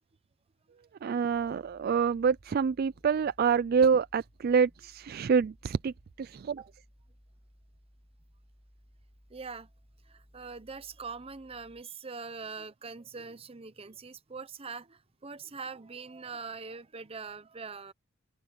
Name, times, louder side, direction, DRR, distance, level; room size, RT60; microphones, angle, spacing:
voice 1, 1.0-6.6, right 6 dB, 50° right, 0.3 m, -27 dB
sound 1, 1.3-11.8, equal, 15° left, 2.5 m, -61 dB
voice 2, 9.3-9.7 10.0-17.9, right 4 dB, 30° right, 0.8 m, -43 dB
open air
head